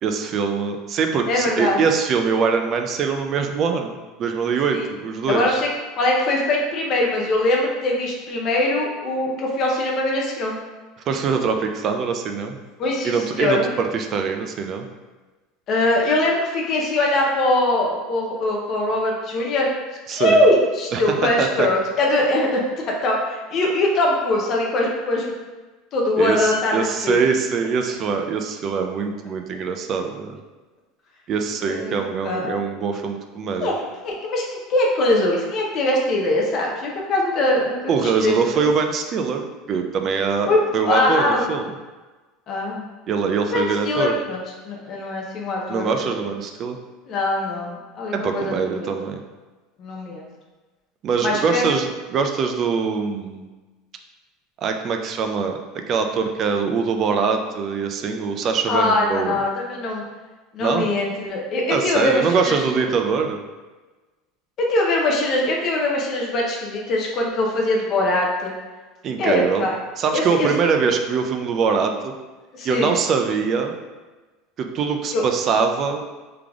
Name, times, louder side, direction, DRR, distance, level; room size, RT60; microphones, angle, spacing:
voice 1, 0.0-5.6 11.1-12.6 13.0-14.9 20.1-20.4 20.9-21.0 21.4-21.7 26.2-30.3 31.3-33.7 37.9-41.7 43.1-44.2 45.7-46.8 48.1-49.2 51.0-53.5 54.6-59.4 60.6-60.9 61.7-63.4 69.0-69.7 70.0-72.1 72.6-73.7 74.6-76.0, right 5 dB, 30° right, 5 dB, 0.3 m, -23 dB
voice 2, 1.3-1.8 4.7-4.8 5.3-5.7 6.0-10.6 12.8-13.7 15.7-19.7 20.1-22.6 22.9-25.3 25.9-27.2 31.6-32.6 33.6-33.7 34.0-38.7 40.5-41.4 42.5-42.9 43.5-46.2 47.1-48.9 49.8-50.3 51.2-51.6 58.7-60.0 60.5-62.6 64.6-68.5 69.2-69.7 70.1-70.5 72.5-72.9 75.1-75.2, left 1 dB, 30° left, -1 dB, 0.6 m, -22 dB
3.7 x 3.3 x 3.5 m, 1.2 s
cardioid pair, 175°, 0 cm